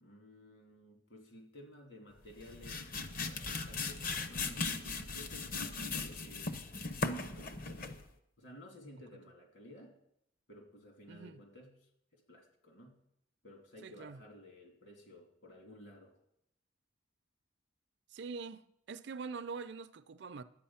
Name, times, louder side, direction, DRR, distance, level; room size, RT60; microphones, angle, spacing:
voice 1, 0.0-6.5 7.3-8.0 8.4-9.9 10.5-13.0 13.4-16.1, left 1 dB, 65° left, 2.7 m, -55 dB
sound 1, 2.3-8.1, left 3 dB, 45° left, 0.7 m, -38 dB
voice 2, 11.1-11.4 13.8-14.2 18.1-20.4, right 4 dB, 60° right, 0.4 m, -44 dB
11.0 x 8.8 x 5.7 m
head